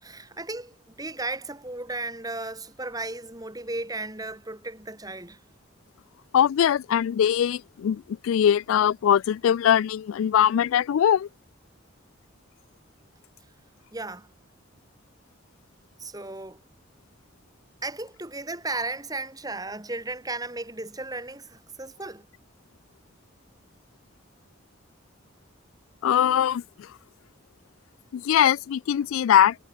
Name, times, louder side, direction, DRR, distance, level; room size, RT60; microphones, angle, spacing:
voice 1, 0.0-5.4 13.9-14.3 16.0-16.6 17.8-22.3, right 2 dB, 20° right, 2.4 m, -35 dB
voice 2, 6.3-11.3 26.0-26.9 28.1-29.6, left 9 dB, 85° left, 0.3 m, -21 dB
head